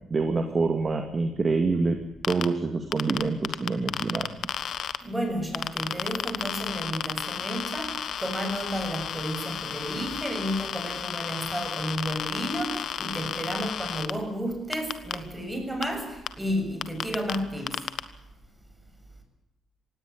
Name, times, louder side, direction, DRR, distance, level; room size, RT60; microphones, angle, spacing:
voice 1, 0.1-2.0 2.3-4.3, right 3 dB, 35° right, 2.3 m, -26 dB
sound 1, 2.2-2.5 2.9-5.0 5.5-14.1 14.7-15.1 15.8-15.9 16.3-16.4 16.8-17.4 17.7-18.0, left 9 dB, 65° left, 1.4 m, -32 dB
voice 2, 5.0-17.8, equal, 10° right, 7.2 m, -32 dB
18.0 x 17.5 x 10.0 m
cardioid pair, 90°, 0 cm